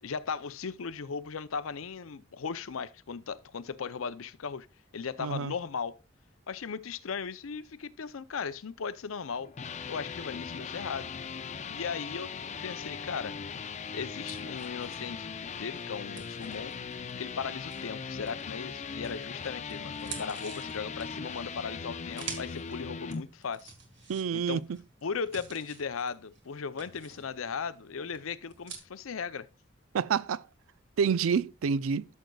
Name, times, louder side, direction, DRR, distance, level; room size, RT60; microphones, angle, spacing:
voice 1, 0.0-4.7 4.9-6.0 6.5-9.5 9.9-11.1 11.7-12.3 12.6-13.4 13.9-16.7 17.2-23.7 24.3-24.6 25.0-29.5, left 5 dB, 80° left, 0.6 m, -37 dB
voice 2, 5.2-5.5 24.1-24.6 29.9-30.5 31.0-32.1, right 6 dB, 85° right, 0.4 m, -28 dB
sound 1, 9.4-23.2, left 5 dB, 35° left, 0.5 m, -39 dB
sound 2, 14.2-18.6 19.0-28.8, right 6 dB, 60° right, 1.6 m, -49 dB
13.0 x 6.4 x 2.3 m
head